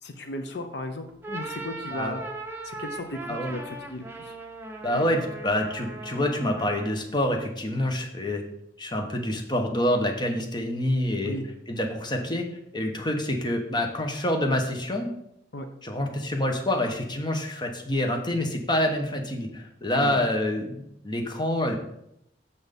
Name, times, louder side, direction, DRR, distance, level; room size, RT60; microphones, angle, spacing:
voice 1, 0.0-2.2 2.6-4.4 4.9-5.1 11.2-11.4 15.5-15.7 19.9-20.2, left 1 dB, 70° left, 7 dB, 0.8 m, -36 dB
sound 1, 1.1-7.1, right 2 dB, 15° right, 0.9 m, -39 dB
voice 2, 4.8-8.4 8.8-11.3 11.7-12.4 12.7-15.1 15.8-21.8, left 1 dB, 25° left, 3 dB, 1.2 m, -27 dB
7.1 x 6.2 x 5.3 m, 0.76 s
head